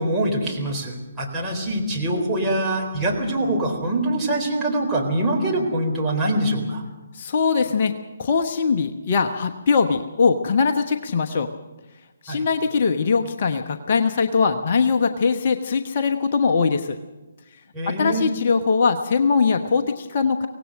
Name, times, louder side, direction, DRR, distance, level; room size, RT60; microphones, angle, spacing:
voice 1, 0.0-6.8 12.3-12.4 17.7-18.2, right 1 dB, 10° right, -3 dB, 3.8 m, -24 dB
voice 2, 7.1-7.9 8.2-11.5 12.2-17.0 17.9-20.5, left 5 dB, 40° left, 5 dB, 1.1 m, -21 dB
24.0 x 17.5 x 6.4 m, 1.1 s
figure-of-eight pair, 135°, 0 cm